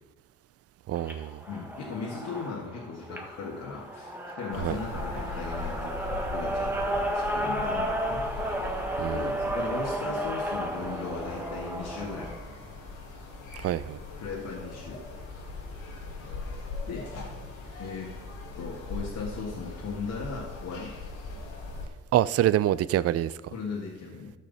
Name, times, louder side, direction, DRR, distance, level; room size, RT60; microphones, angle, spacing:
sound 1, 0.9-12.4, right 1 dB, 5° right, 1.5 m, -33 dB
voice 1, 0.9-1.4 4.6-4.8 9.0-9.4 13.6-14.0 22.1-23.3, right 12 dB, 55° right, 0.4 m, -26 dB
voice 2, 1.5-8.3 9.1-12.3 14.2-15.0 16.2-16.4 16.9-17.1 17.8-18.1 18.5-20.9 23.5-24.3, left 4 dB, 70° left, 1.9 m, -37 dB
sound 2, 4.5-21.9, left 3 dB, 85° left, 2.1 m, -40 dB
13.5 x 6.4 x 4.1 m
cardioid pair, 90°, 30 cm